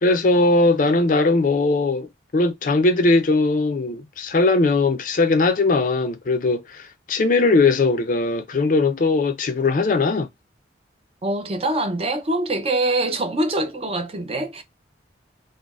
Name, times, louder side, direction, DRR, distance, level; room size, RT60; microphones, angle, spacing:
voice 1, 0.0-10.3, left 3 dB, 45° left, 0.4 m, -19 dB
voice 2, 11.2-14.6, right 2 dB, 30° right, 0.5 m, -24 dB
3.8 x 2.1 x 2.3 m
head